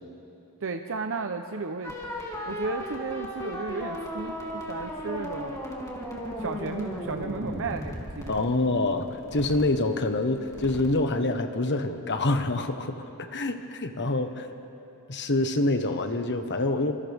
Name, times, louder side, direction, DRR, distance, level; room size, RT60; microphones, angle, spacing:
voice 1, 0.6-2.0 2.5-5.6 6.4-8.3, right 4 dB, 60° right, 5 dB, 0.8 m, -33 dB
sound 1, 1.8-11.0, equal, 15° left, 2.8 m, -36 dB
voice 2, 8.3-14.5 15.1-16.9, left 2 dB, 55° left, 7 dB, 1.2 m, -26 dB
27.5 x 27.0 x 3.6 m, 2.8 s
head